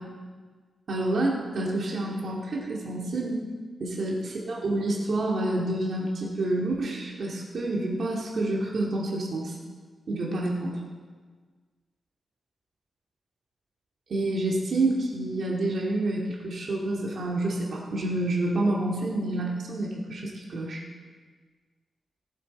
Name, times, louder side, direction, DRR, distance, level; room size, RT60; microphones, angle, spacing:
voice 1, 0.9-3.4 3.8-9.6 10.1-10.8 14.1-20.9, right 2 dB, 55° right, -3 dB, 2.1 m, -28 dB
19.0 x 8.1 x 4.3 m, 1.5 s
wide cardioid pair, 175°, 0 cm